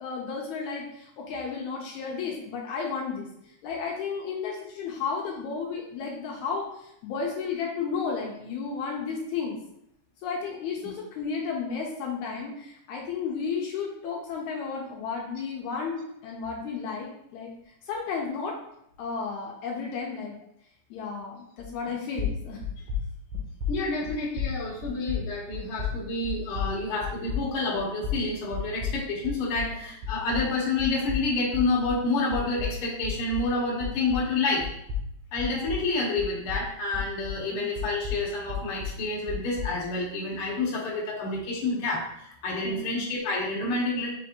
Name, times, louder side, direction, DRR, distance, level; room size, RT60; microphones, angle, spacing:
voice 1, 0.0-3.3 3.6-9.6 10.2-17.5 17.9-18.6 19.0-20.4 20.9-22.6 29.6-29.8 37.5-37.7 42.6-43.0, left 5 dB, 80° left, -1 dB, 1.9 m, -33 dB
sound 1, 21.6-21.9 22.2-29.8 30.0-34.4 34.6-37.5 37.8-39.8, left 6 dB, 85° right, 2.3 m, -33 dB
voice 2, 23.7-34.6 35.3-44.1, left 3 dB, 60° left, -3 dB, 1.6 m, -29 dB
5.2 x 3.3 x 2.8 m, 0.75 s
omnidirectional pair, 3.5 m